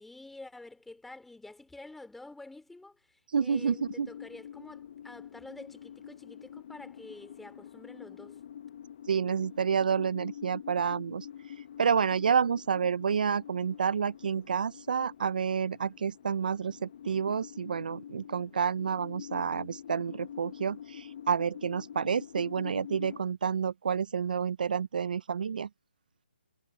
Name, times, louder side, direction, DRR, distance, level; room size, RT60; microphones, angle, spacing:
voice 1, 0.0-8.4, left 2 dB, 5° left, 3.0 m, -49 dB
voice 2, 3.3-4.1 9.1-25.7, right 7 dB, 55° right, 0.6 m, -29 dB
sound 1, 3.5-23.2, left 9 dB, 45° left, 1.2 m, -46 dB
figure-of-eight pair, 150°, 5 cm